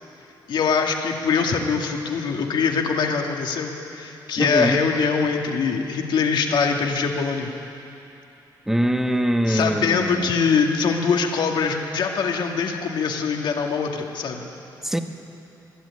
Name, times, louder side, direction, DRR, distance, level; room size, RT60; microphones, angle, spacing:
voice 1, 0.5-7.5 9.5-14.4, left 5 dB, 70° left, 2 dB, 2.2 m, -23 dB
voice 2, 4.4-4.8 8.7-10.2 14.8-15.0, equal, 5° right, 6 dB, 1.3 m, -22 dB
21.5 x 13.0 x 9.7 m, 2.9 s
cardioid pair, 90°, 8 cm